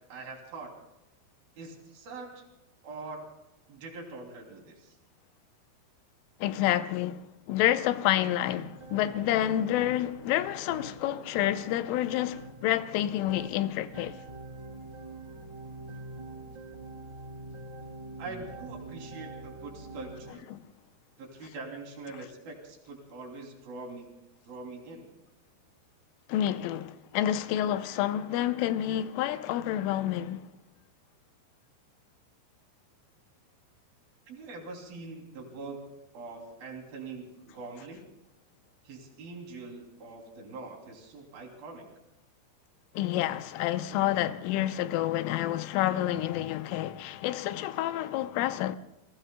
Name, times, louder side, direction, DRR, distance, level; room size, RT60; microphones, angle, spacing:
voice 1, 0.1-0.7 1.6-2.4 2.8-3.2 3.7-4.9 18.2-20.4 21.2-24.1 24.5-25.1 34.3-35.9 36.1-38.0 38.8-41.9, right 3 dB, 50° right, 4.4 m, -43 dB
voice 2, 6.4-14.2 20.5-20.6 26.3-30.5 42.9-48.8, left 13 dB, 80° left, 3.2 m, -29 dB
sound 1, 8.5-20.3, right 2 dB, 30° right, 0.9 m, -45 dB
28.5 x 20.0 x 2.3 m
omnidirectional pair, 5.8 m